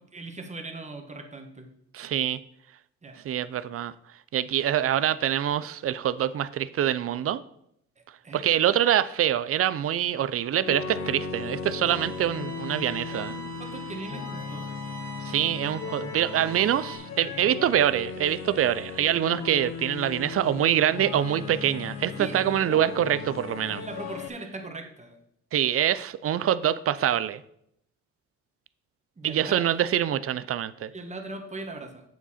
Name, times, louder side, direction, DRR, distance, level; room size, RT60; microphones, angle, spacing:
voice 1, 0.0-1.7 3.0-3.2 8.2-8.4 13.1-14.7 22.2-22.5 23.7-25.2 29.2-29.7 30.9-32.0, right 2 dB, 25° right, 4 dB, 1.5 m, -39 dB
voice 2, 1.9-2.4 3.2-3.9 4.3-7.4 8.3-13.4 15.2-23.8 25.5-27.4 29.2-30.9, right 10 dB, 50° right, 16 dB, 0.5 m, -25 dB
sound 1, 10.6-24.3, left 5 dB, 65° left, 0.9 m, -37 dB
sound 2, 11.9-17.0, right 5 dB, 85° right, 2.0 m, -43 dB
8.1 x 7.4 x 4.2 m, 0.73 s
cardioid pair, 90°, 30 cm